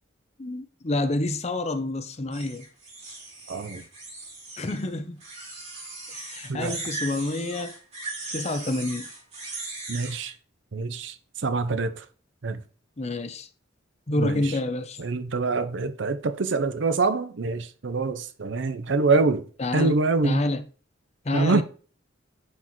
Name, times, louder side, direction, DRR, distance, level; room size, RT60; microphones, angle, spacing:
voice 1, 0.4-2.6 4.6-5.2 6.1-7.8 8.3-9.1 13.0-13.5 14.1-15.0 19.6-20.6 21.2-21.6, left 2 dB, 35° left, 0.6 m, -28 dB
sound 1, 2.3-4.8 5.2-10.3, right 3 dB, 35° right, 3.3 m, -38 dB
voice 2, 3.5-3.8 6.5-6.8 9.9-10.3 10.7-11.1 11.4-12.0 12.4-12.6 14.2-14.4 15.0-19.4 19.7-20.4 21.3-21.6, right 3 dB, 75° right, 0.7 m, -25 dB
9.5 x 4.5 x 3.0 m
head